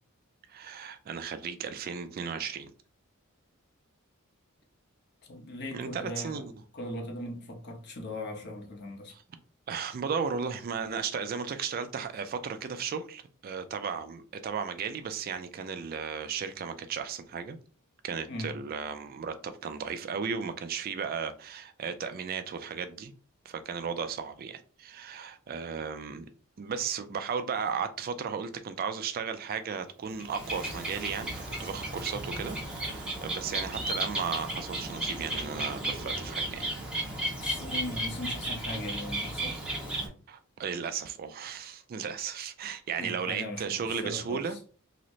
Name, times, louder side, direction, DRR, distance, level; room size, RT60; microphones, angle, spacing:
voice 1, 0.5-2.7 5.7-6.5 9.1-9.2 9.7-17.6 18.0-23.1 23.5-26.3 26.6-32.6 32.8-36.7 40.3-44.6, right 6 dB, 45° right, 0.3 m, -35 dB
voice 2, 5.3-6.5 6.7-9.1 18.3-18.5 37.4-39.6 43.0-44.6, left 1 dB, 50° left, 0.8 m, -39 dB
Bird, 30.0-40.1, right 1 dB, 5° right, 0.8 m, -34 dB
3.9 x 2.0 x 3.0 m
head